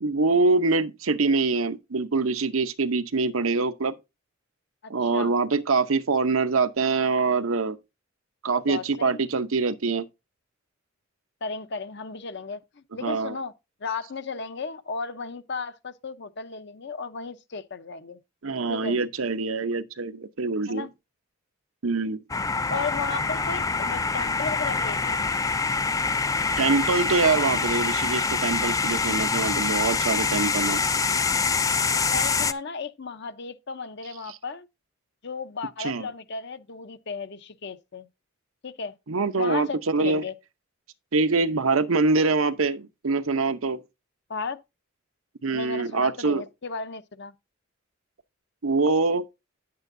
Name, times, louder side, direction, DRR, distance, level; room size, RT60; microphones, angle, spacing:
voice 1, 0.0-3.9 4.9-7.8 8.4-10.1 13.0-13.4 18.4-20.9 21.8-22.2 26.6-30.8 35.8-36.0 39.1-40.2 41.1-43.8 45.4-46.4 48.6-49.2, right 3 dB, 85° right, 0.8 m, -24 dB
voice 2, 4.8-5.3 8.7-9.2 11.4-13.5 13.8-18.2 18.7-19.0 20.7-20.9 22.7-25.2 32.1-34.7 35.2-38.1 38.6-38.9 39.3-40.3 44.3-44.6 45.5-47.3, left 4 dB, 55° left, 0.8 m, -35 dB
sound 1, 22.3-32.5, left 4 dB, 15° left, 0.3 m, -25 dB
10.0 x 8.6 x 2.6 m
head